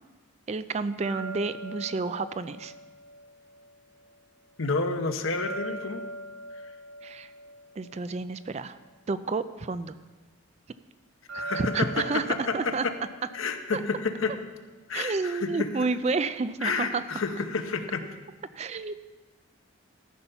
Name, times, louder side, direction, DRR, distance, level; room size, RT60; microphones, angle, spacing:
voice 1, 0.5-2.7 7.0-7.3 7.8-8.8 9.1-10.0 11.3-12.9 13.7-13.8 14.9-17.0 18.6-18.9, right 4 dB, 30° right, 13 dB, 0.3 m, -30 dB
sound 1, 1.0-4.1 5.3-8.8 11.3-14.4, right 1 dB, 80° right, 3.7 m, -41 dB
voice 2, 4.6-6.0 11.4-12.0 12.3-12.9 13.3-14.3 14.9-15.7 16.6-18.0, left 4 dB, 80° left, 7 dB, 0.9 m, -30 dB
13.5 x 5.7 x 5.6 m, 1.2 s
head